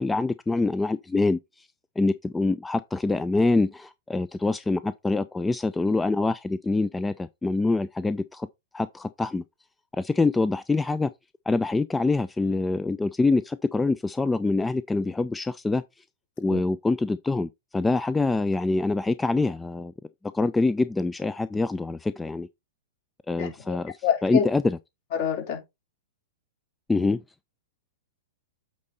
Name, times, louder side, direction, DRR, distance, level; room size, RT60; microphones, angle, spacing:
voice 1, 0.0-1.7 2.0-8.5 8.7-9.4 9.9-11.1 11.5-15.8 16.4-19.9 20.3-22.5 23.3-23.9 24.2-24.8 26.9-27.2, left 3 dB, 10° left, 0.4 m, -25 dB
voice 2, 23.4-23.8 24.0-24.4 25.2-25.6, left 8 dB, 50° left, 3.7 m, -27 dB
8.4 x 4.2 x 3.9 m
hypercardioid pair, 105°, 0 cm